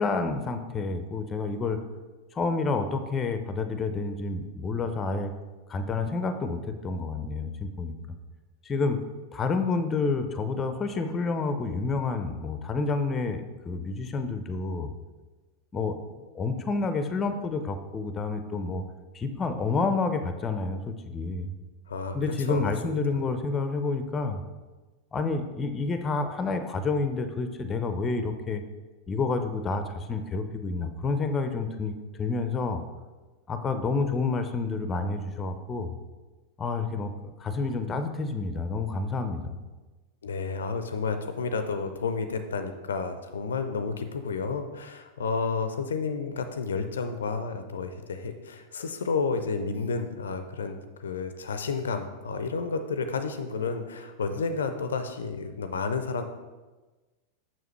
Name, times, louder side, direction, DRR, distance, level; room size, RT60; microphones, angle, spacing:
voice 1, 0.0-1.8 2.3-5.3 5.7-8.0 8.6-9.0 9.3-14.9 15.7-16.0 16.3-18.8 19.1-21.5 22.1-24.4 25.1-28.6 29.1-32.8 33.5-35.9 36.6-39.6, left 4 dB, 20° left, 9 dB, 0.5 m, -29 dB
voice 2, 21.9-23.2 40.2-56.2, left 4 dB, 65° left, 8 dB, 0.4 m, -31 dB
6.9 x 6.0 x 3.2 m, 1.2 s
figure-of-eight pair, 90°, 0 cm